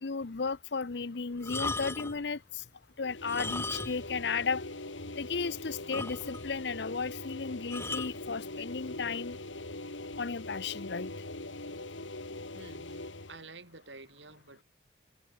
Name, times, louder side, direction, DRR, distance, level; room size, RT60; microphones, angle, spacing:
voice 1, 0.0-2.4 3.0-4.6 5.2-9.4 10.2-11.1, left 5 dB, 60° left, 0.7 m, -34 dB
sound 1, 1.4-2.2 3.2-4.2 4.4-4.6 5.1-5.2 5.4-5.5 5.9-6.6 7.7-8.2 9.0-9.3, left 3 dB, 15° left, 2.3 m, -37 dB
sound 2, 3.0-13.4, left 2 dB, 80° left, 4.7 m, -42 dB
voice 2, 12.5-14.6, right 3 dB, 70° right, 5.7 m, -50 dB
head